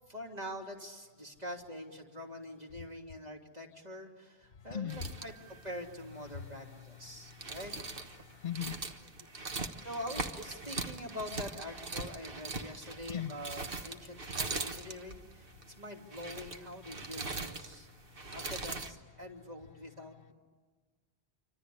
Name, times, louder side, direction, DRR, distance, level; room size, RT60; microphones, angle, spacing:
voice 1, 0.1-7.7 9.8-17.9 18.3-20.3, left 1 dB, 40° right, 0 dB, 3.1 m, -45 dB
voice 2, 4.6-5.1 6.2-7.6 8.0-9.3 13.1-13.4 14.3-14.7 15.6-15.7 18.0-18.3, left 9 dB, 50° left, 11 dB, 1.1 m, -42 dB
sound 1, 4.9-18.9, right 3 dB, 60° right, 1.5 m, -41 dB
27.5 x 25.5 x 8.6 m, 1.4 s
omnidirectional pair, 1.1 m